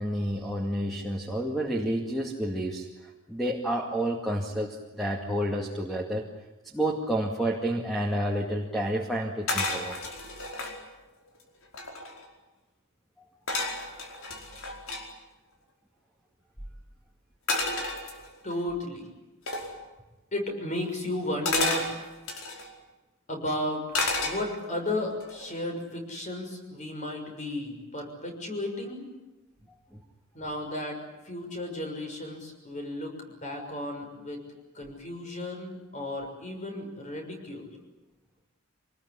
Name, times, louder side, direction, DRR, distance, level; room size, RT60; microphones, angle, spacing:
voice 1, 0.0-6.2 6.7-10.0 29.9-30.0, right 1 dB, ahead, 0 dB, 2.2 m, -30 dB
sound 1, 9.5-10.8 11.4-11.5 11.6-12.3 13.5-15.0 17.5-18.6 19.5-19.7 21.5-22.7 23.9-24.8 25.2-25.6, left 2 dB, 70° left, 4.9 m, -31 dB
voice 2, 18.4-19.1 20.3-21.9 23.3-23.8 24.2-29.1 30.3-31.0 31.2-34.4 34.7-37.7, left 1 dB, 35° left, 3 dB, 6.4 m, -34 dB
25.5 x 20.0 x 10.0 m, 1.0 s
head